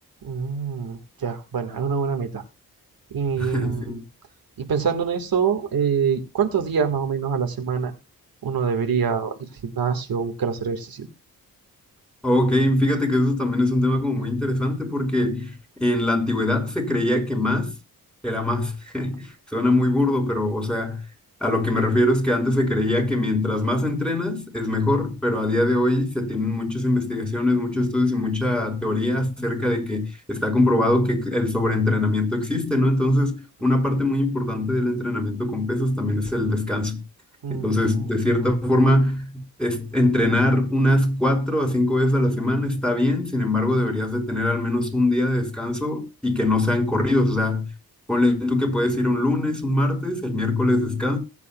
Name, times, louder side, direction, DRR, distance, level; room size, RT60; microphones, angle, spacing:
voice 1, 0.2-2.4 3.1-4.0 4.6-7.9 8.4-9.3 9.6-11.1 37.4-37.8, right 6 dB, 75° right, 1.7 m, -25 dB
voice 2, 3.4-4.0 12.2-17.7 18.2-21.0 21.4-37.0 37.5-47.7 48.1-51.2, left 1 dB, ahead, 5.5 m, -22 dB
21.0 x 8.3 x 2.3 m
cardioid pair, 75°, 36 cm